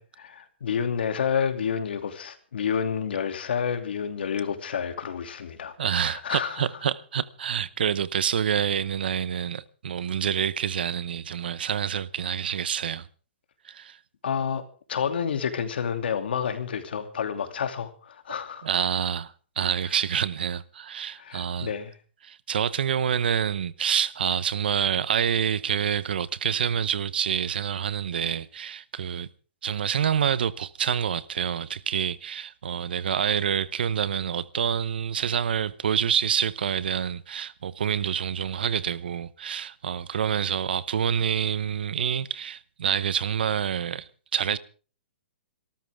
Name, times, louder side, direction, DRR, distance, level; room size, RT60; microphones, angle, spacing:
voice 1, 0.0-6.7 14.2-14.6 14.9-18.7 21.1-21.9, left 7 dB, 65° left, 2.6 m, -29 dB
voice 2, 5.8-13.1 13.6-14.0 18.6-21.7 22.2-29.3 29.6-44.6, right 8 dB, 60° right, 0.9 m, -27 dB
27.5 x 13.0 x 3.6 m
hypercardioid pair, 175°, 6 cm